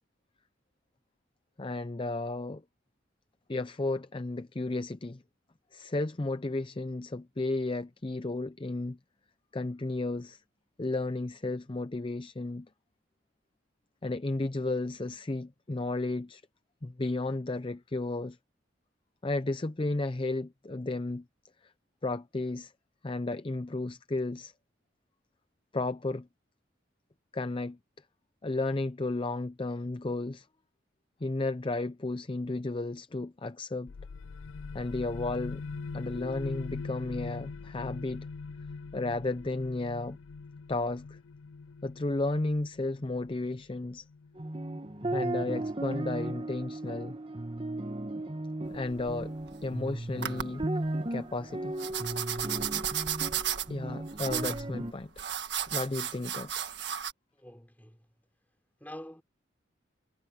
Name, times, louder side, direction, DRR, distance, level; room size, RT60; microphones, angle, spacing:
voice 1, 1.6-2.6 3.5-5.2 5.7-9.0 9.5-10.4 10.8-12.7 14.0-16.4 16.8-18.4 19.2-21.2 22.0-22.7 23.0-24.5 25.7-26.3 27.3-27.8 28.4-30.5 31.2-33.9 34.7-35.6 35.9-38.3 38.9-40.2 40.7-41.2 41.8-44.1 45.1-47.2 48.7-49.4 49.6-50.6 51.1-51.7 53.7-55.2 55.7-56.5, left 2 dB, 25° left, 0.5 m, -33 dB
sound 1, 33.9-45.2, left 4 dB, 85° left, 0.5 m, -42 dB
sound 2, 44.4-54.9, right 1 dB, 30° right, 1.1 m, -35 dB
sound 3, 48.7-49.7 50.2-50.7 51.8-57.1, right 9 dB, 60° right, 1.7 m, -34 dB
voice 2, 57.3-58.1 58.8-59.2, left 1 dB, 10° left, 5.4 m, -46 dB
head